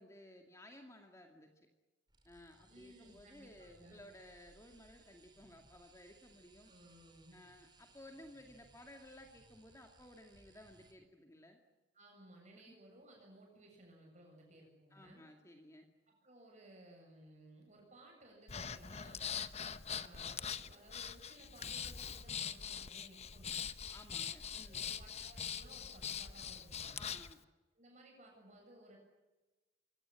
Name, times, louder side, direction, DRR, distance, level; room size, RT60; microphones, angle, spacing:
voice 1, 0.0-1.7 2.2-6.7 7.3-11.6 12.7-12.8 14.9-15.9 23.9-24.8 26.9-27.4, left 1 dB, 20° left, 3 dB, 2.4 m, -57 dB
sound 1, 2.1-10.9, right 2 dB, 25° right, 5.3 m, -66 dB
voice 2, 2.7-4.0 6.7-7.4 11.9-15.2 16.1-19.4 19.9-23.6 24.6-27.1 27.7-29.0, right 1 dB, 45° right, 0 dB, 7.7 m, -59 dB
Breathing, 18.5-27.3, left 7 dB, 40° left, 1.0 m, -43 dB
24.5 x 18.0 x 9.9 m, 1.1 s
head